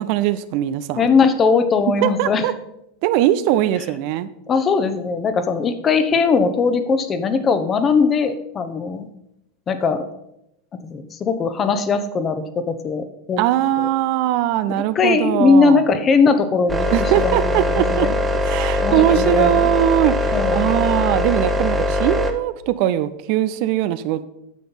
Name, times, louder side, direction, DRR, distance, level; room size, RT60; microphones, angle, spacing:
voice 1, 0.0-1.2 2.0-2.5 3.0-4.3 13.4-15.8 16.9-18.1 18.4-24.2, right 13 dB, 50° right, 13 dB, 0.5 m, -20 dB
voice 2, 1.0-2.4 4.5-9.1 9.7-10.0 10.8-13.4 13.8-13.9 14.9-17.4 17.7-18.1 18.8-19.7 20.3-20.7, left 4 dB, 30° left, 9 dB, 1.1 m, -19 dB
sound 1, 16.7-22.3, left 1 dB, 15° right, 1.2 m, -21 dB
9.2 x 7.0 x 5.7 m, 0.82 s
figure-of-eight pair, 85°, 0 cm